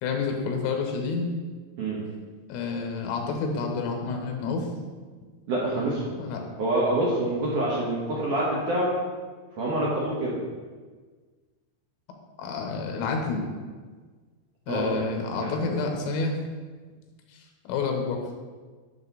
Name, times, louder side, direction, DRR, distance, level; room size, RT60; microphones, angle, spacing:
voice 1, 0.0-1.3 2.5-4.7 6.2-6.4 12.4-13.5 14.7-16.4 17.3-17.4 17.7-18.2, left 4 dB, 85° left, 2 dB, 3.8 m, -29 dB
voice 2, 5.5-6.0 6.6-8.9 9.6-10.4 14.7-15.0 15.4-15.5, right 1 dB, 65° right, -6 dB, 2.1 m, -26 dB
12.0 x 6.4 x 4.1 m, 1.4 s
omnidirectional pair, 5.6 m